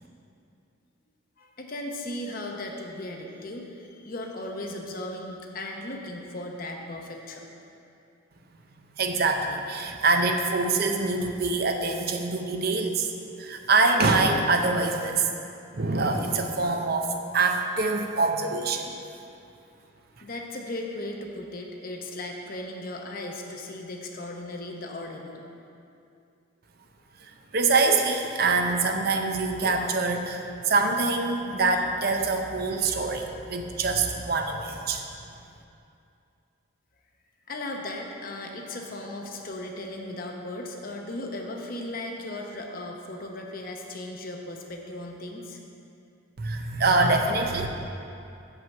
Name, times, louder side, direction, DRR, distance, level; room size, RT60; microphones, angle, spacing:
voice 1, 1.4-7.5 20.2-25.4 37.5-45.6, left 1 dB, 45° left, 2 dB, 0.8 m, -37 dB
voice 2, 9.0-13.1 13.4-15.3 15.7-18.9 27.2-35.0 46.4-47.7, right 3 dB, 50° right, 4 dB, 0.6 m, -25 dB
7.5 x 5.7 x 7.0 m, 2.6 s
head